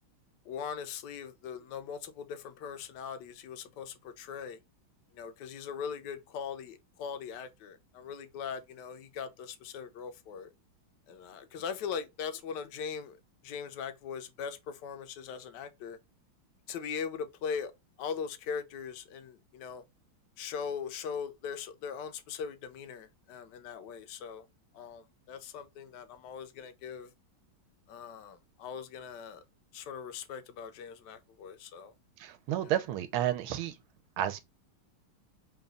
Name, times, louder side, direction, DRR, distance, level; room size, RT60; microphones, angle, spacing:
voice 1, 0.5-4.6 5.2-10.5 11.1-13.2 13.4-16.0 16.7-17.7 18.0-19.8 20.4-24.4 24.7-27.1 27.9-29.4 29.7-31.9 32.6-32.7, left 6 dB, 70° left, 1.1 m, -40 dB
voice 2, 32.2-33.7 34.2-34.4, right 12 dB, 90° right, 1.5 m, -31 dB
3.9 x 2.3 x 3.8 m
omnidirectional pair, 2.3 m